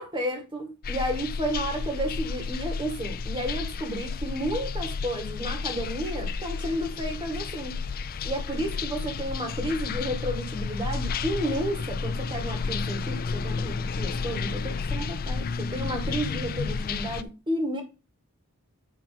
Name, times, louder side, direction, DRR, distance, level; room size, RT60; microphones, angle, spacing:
voice 1, 0.0-7.8 8.2-15.4 15.7-17.8, equal, 20° right, 1.9 m, -32 dB
sound 1, 0.8-17.2, left 4 dB, 40° left, 0.4 m, -31 dB
8.4 x 3.4 x 5.9 m
head